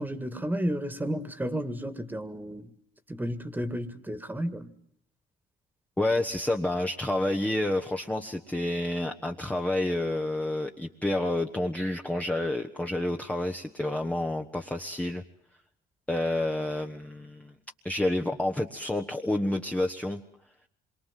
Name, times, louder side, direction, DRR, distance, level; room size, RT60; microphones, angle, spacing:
voice 1, 0.0-2.6 3.1-4.7, equal, 10° right, 1.9 m, -32 dB
voice 2, 6.0-15.2 16.1-17.5 17.8-20.2, left 1 dB, 10° left, 1.2 m, -29 dB
26.5 x 23.5 x 7.6 m
cardioid pair, 110°, 17 cm